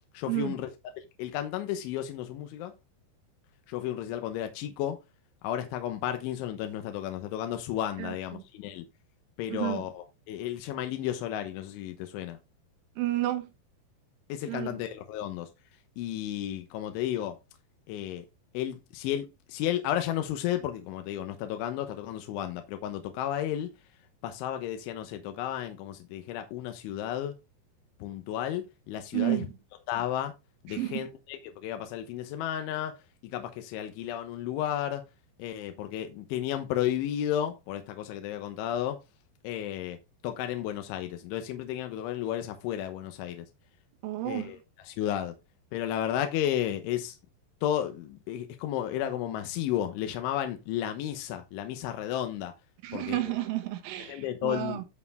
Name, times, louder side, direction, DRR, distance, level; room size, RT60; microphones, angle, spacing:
voice 1, 0.2-0.7 1.2-2.7 3.7-5.0 5.4-8.9 9.4-12.4 14.3-15.5 16.0-17.4 17.9-18.3 18.6-23.7 24.2-27.4 28.0-29.5 29.9-30.3 30.7-33.0 33.3-35.0 35.4-39.0 39.4-40.0 40.2-43.5 44.3-44.6 44.8-45.4 45.7-47.2 47.6-52.5 52.9-53.3 54.0-54.8, left 11 dB, 80° left, 3.5 m, -33 dB
voice 2, 8.0-8.4 9.5-9.8 13.0-13.5 14.5-14.8 29.1-29.5 30.7-31.0 44.0-44.5 52.8-54.8, right 16 dB, 85° right, 3.9 m, -31 dB
14.0 x 4.8 x 3.4 m
omnidirectional pair, 5.4 m